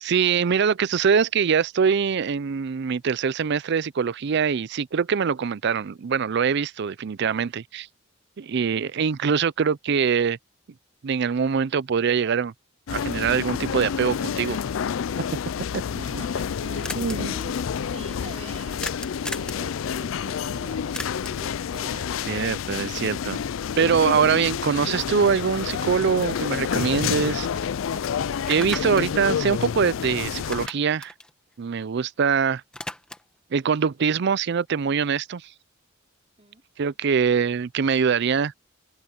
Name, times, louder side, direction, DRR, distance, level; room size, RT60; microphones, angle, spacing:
voice 1, 0.0-7.9 8.4-10.4 11.0-12.5 12.9-14.6 15.3-15.4 15.7-15.8 17.0-17.3 22.3-23.4 23.8-27.5 28.5-31.1 31.6-32.6 33.5-35.5 36.8-38.5, right 6 dB, 60° right, 0.4 m, -23 dB
sound 1, 12.9-30.7, left 7 dB, 75° left, 0.4 m, -29 dB
voice 2, 15.9-17.5 17.9-18.9 19.2-22.2 36.4-36.6, right 2 dB, 35° right, 4.6 m, -44 dB
sound 2, 16.8-17.1 18.8-19.6 20.9-21.5 25.7-25.8 26.2-27.3 27.6-27.7 28.3-30.1 30.4-32.2 32.5-33.4, left 1 dB, 5° left, 1.3 m, -37 dB
head